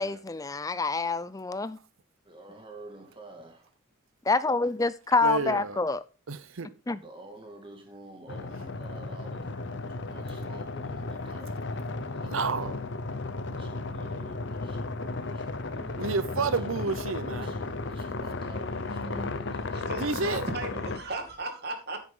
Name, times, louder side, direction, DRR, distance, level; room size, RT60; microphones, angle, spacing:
voice 1, 0.0-1.8 4.3-6.0 6.9-7.0, left 3 dB, 15° left, 0.5 m, -27 dB
voice 2, 2.2-3.7 6.6-11.9 12.1-12.8 13.5-16.6 17.3-19.6, right 2 dB, 25° right, 2.2 m, -50 dB
voice 3, 5.2-5.8 6.3-6.7 12.2-12.7 16.0-17.5 20.0-20.5, right 4 dB, 70° right, 0.7 m, -30 dB
sound 1, 8.3-21.0, left 3 dB, 55° left, 0.9 m, -34 dB
sound 2, 16.4-21.4, left 1 dB, 90° left, 4.4 m, -55 dB
voice 4, 19.7-22.0, right 2 dB, 50° right, 2.3 m, -36 dB
9.7 x 9.0 x 3.8 m
head